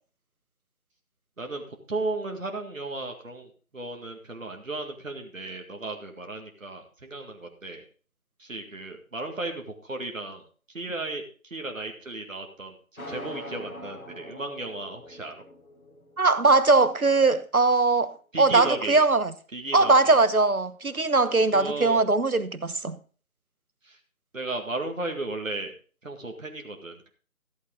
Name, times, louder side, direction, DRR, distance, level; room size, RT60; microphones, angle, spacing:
voice 1, 1.4-7.8 8.4-10.4 10.7-15.3 18.3-19.0 19.5-20.2 21.5-22.0 23.8-24.0 24.3-25.7 26.0-27.1, right 2 dB, 65° right, 2.1 m, -35 dB
sound 1, 13.0-17.0, left 1 dB, 80° left, 2.0 m, -43 dB
voice 2, 16.2-19.3 19.7-23.0, right 3 dB, 85° right, 1.2 m, -21 dB
14.0 x 8.4 x 3.8 m
figure-of-eight pair, 160°, 42 cm